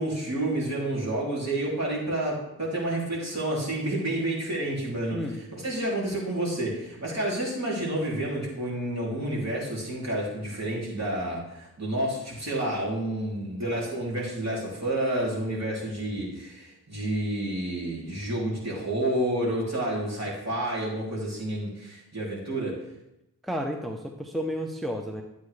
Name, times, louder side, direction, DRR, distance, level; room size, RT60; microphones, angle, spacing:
voice 1, 0.0-5.2 5.5-22.8, right 1 dB, 45° right, -5 dB, 3.1 m, -29 dB
voice 2, 23.4-25.2, equal, ahead, 2 dB, 0.7 m, -31 dB
11.5 x 8.2 x 3.3 m, 0.90 s
wide cardioid pair, 90°, 38 cm